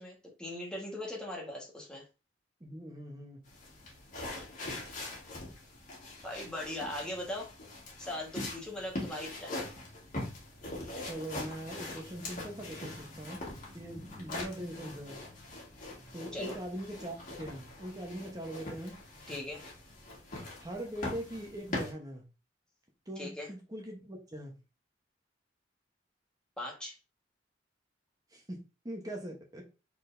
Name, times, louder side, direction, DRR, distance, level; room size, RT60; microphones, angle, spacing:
voice 1, 0.0-2.0 6.2-7.5 8.0-9.7 16.3-16.6 19.3-19.6 23.2-23.5 26.6-26.9, left 1 dB, 5° left, -2 dB, 1.5 m, -39 dB
voice 2, 2.6-3.4 11.0-13.4 13.7-15.2 16.1-19.0 20.6-22.2 23.1-24.6 28.3-28.6 28.8-29.6, right 1 dB, 20° right, 0 dB, 1.0 m, -41 dB
sound 1, 3.5-21.9, left 2 dB, 45° left, 1.8 m, -42 dB
4.8 x 4.1 x 2.6 m, 0.30 s
head